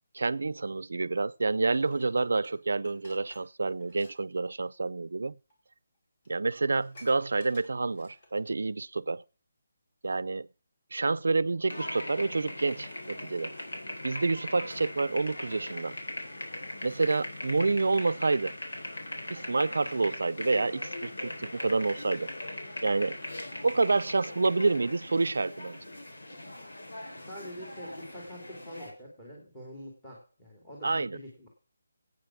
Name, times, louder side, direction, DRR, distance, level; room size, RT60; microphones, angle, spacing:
voice 1, 0.1-5.3 6.3-9.2 10.0-10.5 10.9-13.5 14.0-16.0 16.8-18.5 19.3-22.3 22.8-23.2 23.6-25.8 30.8-31.2, right 3 dB, 80° right, 0.6 m, -28 dB
Dishes pots and pans, 1.7-4.2 4.5-4.7 5.5-5.6 5.9-6.0 6.2-8.5 8.9-9.0, left 1 dB, 40° left, 4.3 m, -56 dB
sound 1, 11.7-28.9, left 1 dB, 90° left, 3.7 m, -40 dB
voice 2, 27.2-31.5, equal, 10° left, 3.1 m, -45 dB
11.5 x 9.0 x 6.0 m
hypercardioid pair, 175°, 0 cm